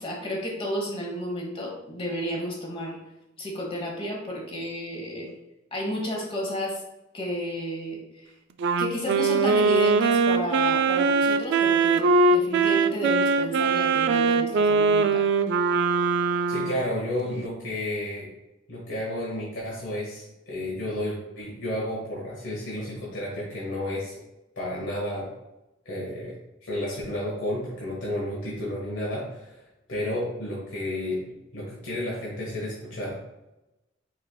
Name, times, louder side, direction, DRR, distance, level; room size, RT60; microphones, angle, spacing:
voice 1, 0.0-3.0 3.4-5.3 5.7-6.8 7.1-8.3 8.8-15.3, equal, 30° left, 0 dB, 1.2 m, -32 dB
Wind instrument woodwind instrument, 8.6-16.9, right 4 dB, 60° right, 0.3 m, -22 dB
voice 2, 16.5-18.3 18.7-24.1 24.5-25.3 25.8-26.4 26.6-29.6 29.9-31.2 31.5-33.2, left 1 dB, 80° left, -6 dB, 1.4 m, -31 dB
4.8 x 4.4 x 2.3 m, 0.95 s
head